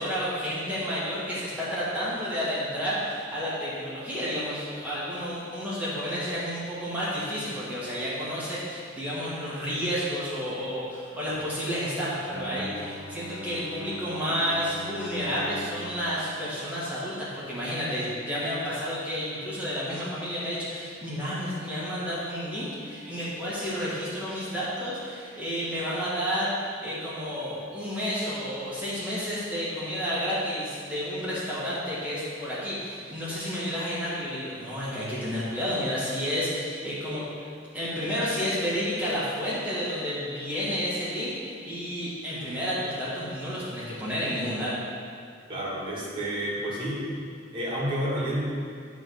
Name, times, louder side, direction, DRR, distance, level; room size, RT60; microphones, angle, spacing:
voice 1, 0.0-37.2 37.7-44.7, equal, 10° right, -10 dB, 1.8 m, -31 dB
Bowed string instrument, 12.3-17.5, equal, 85° right, 0.9 m, -43 dB
voice 2, 45.5-47.1 47.5-48.4, equal, 25° right, -7 dB, 2.0 m, -30 dB
9.4 x 3.6 x 6.4 m, 2.2 s
head